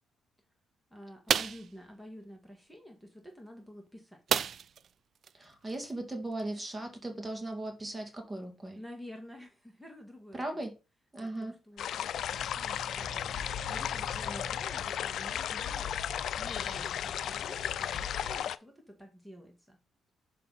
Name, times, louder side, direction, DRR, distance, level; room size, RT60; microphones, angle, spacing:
voice 1, 0.9-4.2 8.7-10.7 11.2-15.9 16.4-19.8, equal, ahead, 2.0 m, -50 dB
sound 1, 1.3-1.7 4.3-4.9 5.2-5.3 5.7-5.9, right 7 dB, 55° right, 0.4 m, -29 dB
voice 2, 5.3-8.8 10.3-10.7 11.1-11.6, right 1 dB, 20° right, 2.2 m, -38 dB
sound 2, 11.8-18.6, left 10 dB, 70° left, 0.5 m, -35 dB
sound 3, 12.1-18.4, left 5 dB, 55° left, 1.2 m, -43 dB
6.8 x 5.9 x 4.2 m
cardioid pair, 90°, 0 cm